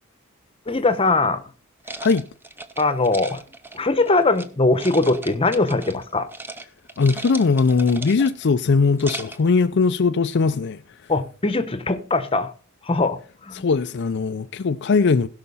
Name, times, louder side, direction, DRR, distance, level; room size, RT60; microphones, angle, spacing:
voice 1, 0.7-1.4 2.8-3.4 3.7-6.3 11.1-12.5 12.8-13.6, left 3 dB, 25° left, 0.9 m, -21 dB
sound 1, 1.8-4.5 4.8-6.0 6.3-6.6 6.9-8.4 8.8-9.5, right 2 dB, 10° right, 0.8 m, -37 dB
voice 2, 7.0-10.8 13.5-15.3, left 4 dB, 55° left, 0.5 m, -20 dB
16.5 x 5.7 x 5.5 m
head